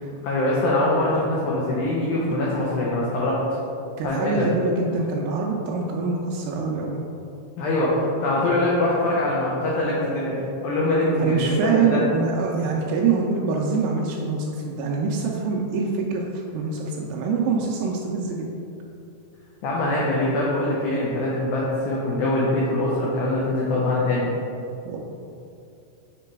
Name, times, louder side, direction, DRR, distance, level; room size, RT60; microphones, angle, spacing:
voice 1, 0.2-3.4 4.0-4.5 7.6-12.0 19.6-24.3, left 1 dB, 85° left, -5 dB, 1.7 m, -23 dB
voice 2, 4.0-7.0 11.2-16.2 16.5-18.5 24.9-25.0, right 4 dB, 85° right, -1 dB, 2.0 m, -25 dB
7.6 x 3.0 x 4.6 m, 2.7 s
omnidirectional pair, 4.6 m